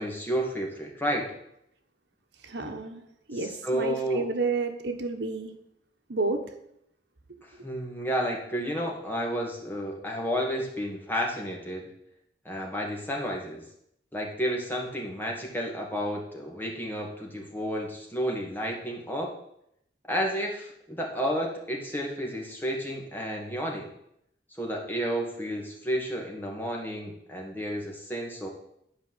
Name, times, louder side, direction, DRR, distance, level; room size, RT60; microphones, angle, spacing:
voice 1, 0.0-1.3 3.4-4.3 7.4-11.9 12.4-13.6 14.1-19.3 20.1-23.9 24.6-28.5, equal, 10° left, -1 dB, 2.2 m, -31 dB
voice 2, 2.4-3.0 3.3-5.5 6.1-6.4 7.3-7.4, right 3 dB, 80° right, 6 dB, 1.3 m, -30 dB
11.5 x 5.1 x 7.9 m, 0.75 s
head